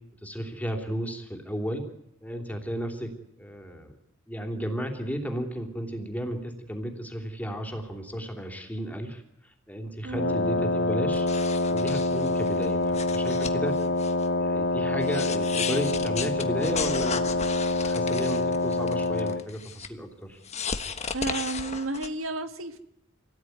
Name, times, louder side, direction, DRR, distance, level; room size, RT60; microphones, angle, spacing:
voice 1, 0.2-1.8 2.2-3.1 3.4-3.9 4.3-11.3 11.7-13.7 14.4-20.4, equal, 10° left, 4 dB, 3.3 m, -34 dB
voice 2, 10.0-10.4 21.1-22.8, right 2 dB, 85° right, 8 dB, 1.8 m, -32 dB
Wind instrument woodwind instrument, 10.1-19.5, left 2 dB, 60° left, 1.0 m, -26 dB
sound 1, 11.1-14.3 14.6-14.7 15.0-19.9 20.4-22.1, left 6 dB, 35° left, 1.4 m, -35 dB
26.5 x 17.5 x 9.5 m, 0.78 s
head